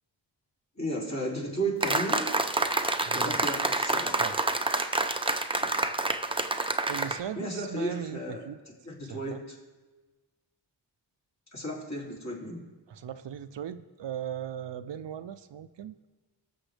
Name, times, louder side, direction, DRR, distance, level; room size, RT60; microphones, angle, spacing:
voice 1, 0.8-2.3 3.1-4.2 5.6-5.7 7.4-8.4 8.8-9.4 11.5-12.6, right 1 dB, 35° left, -3 dB, 2.8 m, -34 dB
sound 1, 1.8-7.2, right 2 dB, 10° right, 0.6 m, -28 dB
voice 2, 3.0-3.4 4.1-4.4 4.8-5.0 6.9-8.6 9.0-9.4 12.9-16.0, right 9 dB, 75° right, 12 dB, 0.5 m, -38 dB
20.5 x 7.1 x 3.3 m, 1.3 s
wide cardioid pair, 70°, 44 cm